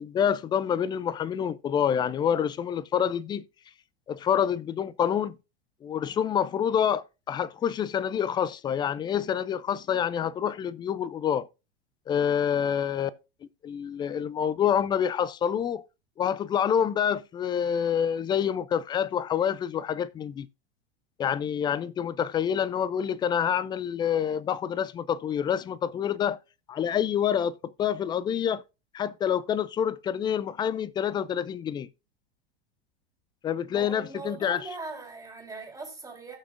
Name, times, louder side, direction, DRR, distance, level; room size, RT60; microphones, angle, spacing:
voice 1, 0.0-3.4 4.1-5.4 5.8-11.5 12.1-13.1 13.6-15.8 16.2-20.5 21.2-26.4 26.7-28.6 28.9-31.9 33.4-34.6, left 8 dB, 15° left, 0.3 m, -27 dB
voice 2, 33.7-36.4, right 3 dB, 10° right, 3.8 m, -40 dB
16.5 x 6.0 x 2.5 m
figure-of-eight pair, 90°, 32 cm